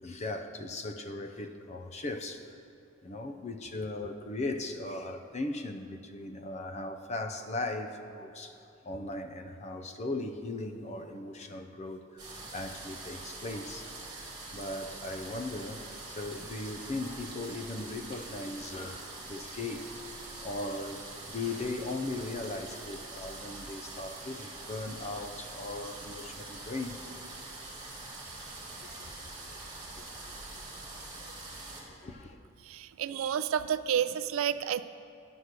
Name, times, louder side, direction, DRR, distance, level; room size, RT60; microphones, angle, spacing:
voice 1, 0.0-2.5 3.0-8.6 8.8-13.9 14.5-19.9 20.4-27.0 28.8-29.5 30.8-30.9 31.2-31.3 31.6-32.4, left 2 dB, 35° left, 0.5 m, -38 dB
sound 1, 12.2-31.8, right 2 dB, 20° right, 1.7 m, -44 dB
voice 2, 32.6-34.8, right 9 dB, 75° right, 0.3 m, -30 dB
9.8 x 6.0 x 6.6 m
head